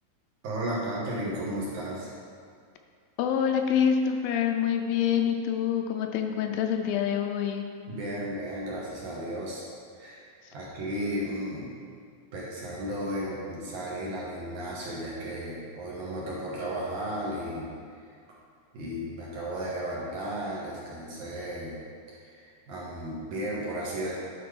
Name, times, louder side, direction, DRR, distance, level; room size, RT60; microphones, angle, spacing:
voice 1, 0.4-2.1 7.9-9.6 9.9-11.7 12.3-17.7 18.7-21.8 22.1-24.2, right 1 dB, 65° right, -6 dB, 2.3 m, -34 dB
voice 2, 3.2-7.7, left 8 dB, 80° left, 4 dB, 2.3 m, -26 dB
11.0 x 4.3 x 4.7 m, 2.2 s
omnidirectional pair, 4.3 m